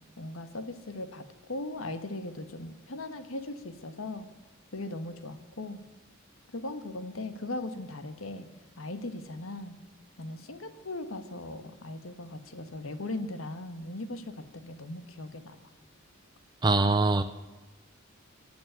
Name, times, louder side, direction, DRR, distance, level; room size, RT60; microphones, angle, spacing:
voice 1, 0.2-4.3 4.7-5.8 6.5-8.5 8.8-9.8 10.2-15.6, left 2 dB, 90° left, 10 dB, 1.4 m, -38 dB
voice 2, 16.6-17.2, right 3 dB, 20° right, 7 dB, 0.6 m, -23 dB
16.0 x 8.7 x 9.1 m, 1.2 s
head